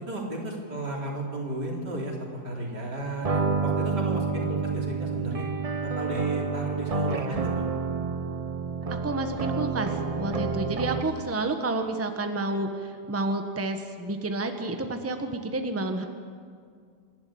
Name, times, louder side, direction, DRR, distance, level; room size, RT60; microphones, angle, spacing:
voice 1, 0.1-5.5 5.8-7.7, right 2 dB, 80° right, -1 dB, 4.1 m, -34 dB
sound 1, 3.2-11.3, right 4 dB, 45° right, 0.4 m, -29 dB
voice 2, 9.0-16.0, right 2 dB, 10° right, 6 dB, 1.2 m, -30 dB
27.5 x 12.0 x 8.7 m, 2.1 s
omnidirectional pair, 1.8 m